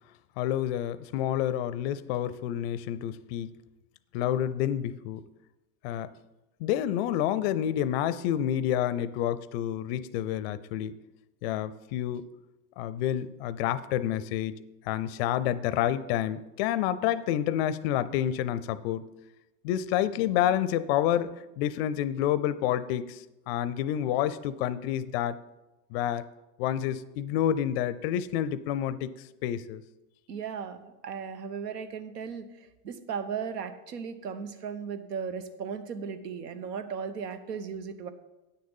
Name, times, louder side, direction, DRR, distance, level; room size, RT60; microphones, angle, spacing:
voice 1, 0.4-3.5 4.1-5.2 5.8-6.1 6.6-11.0 11.4-12.3 12.8-14.6 14.9-19.0 19.6-25.4 25.9-26.2 26.6-29.1 29.4-29.8, left 11 dB, 45° left, 16 dB, 0.5 m, -29 dB
voice 2, 30.3-38.1, right 6 dB, 80° right, 10 dB, 1.1 m, -36 dB
9.4 x 6.6 x 5.4 m, 1.0 s
hypercardioid pair, 125°, 47 cm